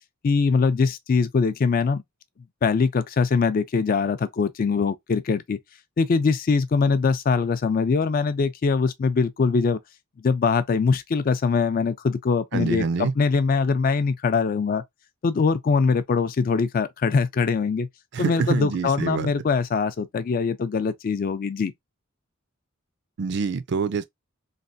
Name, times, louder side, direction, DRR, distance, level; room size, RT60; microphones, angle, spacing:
voice 1, 0.2-2.0 2.6-5.6 6.0-9.8 10.2-14.8 15.2-17.9 18.2-21.7, left 5 dB, 45° left, 0.3 m, -22 dB
voice 2, 12.5-13.1 18.1-19.3 23.2-24.0, right 4 dB, 55° right, 0.4 m, -25 dB
3.2 x 2.4 x 2.5 m
head